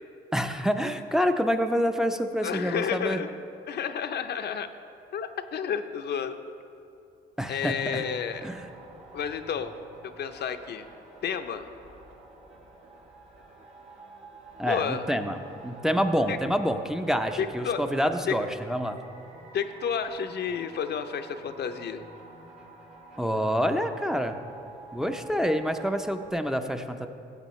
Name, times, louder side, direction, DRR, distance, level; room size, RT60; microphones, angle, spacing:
voice 1, 0.3-3.2 7.4-8.0 8.4-8.6 14.6-15.4 15.6-19.0 23.2-24.4 24.9-27.1, equal, ahead, 6 dB, 0.5 m, -27 dB
voice 2, 2.4-3.3 3.7-4.7 5.1-6.4 7.5-8.5 9.1-9.7 10.0-10.9 11.2-11.7 14.7-15.0 16.3-16.4 17.4-17.8 18.3-18.4 19.5-22.0, left 7 dB, 55° left, 8 dB, 0.6 m, -31 dB
sound 1, 7.7-26.3, right 3 dB, 80° right, 1.9 m, -49 dB
14.5 x 8.2 x 3.1 m, 2.7 s
cardioid pair, 90°, 20 cm